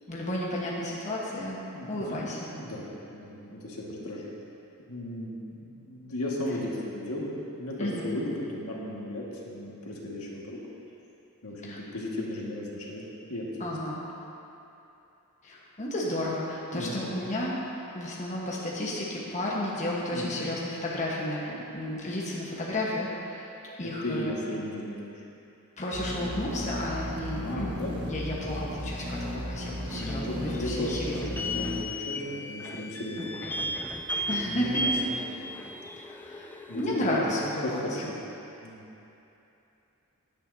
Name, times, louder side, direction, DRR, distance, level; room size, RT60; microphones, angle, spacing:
voice 1, 0.1-1.6 1.9-2.5 7.8-8.2 11.6-11.8 13.6-14.0 15.4-17.5 17.9-23.5 23.8-24.4 25.8-27.7 28.1-31.3 34.3-35.0 36.0-37.8, left 1 dB, 35° left, -5 dB, 1.3 m, -32 dB
voice 2, 1.7-4.3 4.9-10.6 11.4-13.0 13.3-13.7 16.7-17.0 20.1-20.4 24.0-25.2 27.3-27.9 29.8-33.7 34.5-34.9 35.3-35.6 36.7-37.3 37.6-38.2 38.6-38.8, left 1 dB, 75° left, -4 dB, 1.8 m, -35 dB
sound 1, 25.9-31.8, equal, 75° right, 1.3 m, -35 dB
sound 2, 29.9-37.2, equal, 10° left, 0.4 m, -35 dB
15.5 x 10.5 x 2.8 m, 2.9 s
head